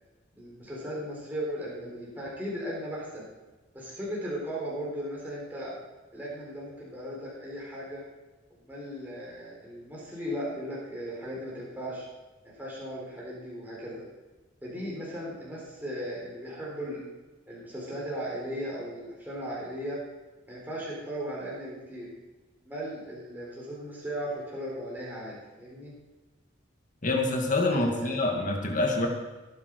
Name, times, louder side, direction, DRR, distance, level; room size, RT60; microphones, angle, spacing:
voice 1, 0.4-3.3 3.7-5.8 6.1-8.0 8.5-12.0 12.4-14.1 14.6-17.0 17.5-20.0 20.5-22.1 22.6-25.9 27.7-28.1, equal, 10° right, -6 dB, 4.0 m, -37 dB
voice 2, 27.0-29.1, left 2 dB, 40° left, 1 dB, 2.2 m, -26 dB
17.0 x 10.0 x 4.7 m, 1.2 s
head